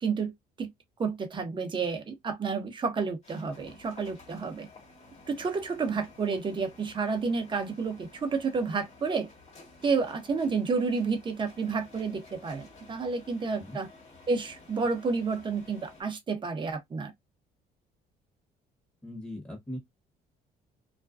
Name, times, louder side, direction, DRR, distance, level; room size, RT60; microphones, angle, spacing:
voice 1, 0.0-0.3 0.6-0.7 1.0-4.7 5.3-9.3 9.8-13.9 14.3-17.1, right 4 dB, 30° right, 0.8 m, -30 dB
sound 1, 3.2-16.0, left 3 dB, 40° left, 1.3 m, -53 dB
voice 2, 19.0-19.8, left 1 dB, 10° left, 1.0 m, -39 dB
2.4 x 2.2 x 2.3 m
cardioid pair, 110°, 17 cm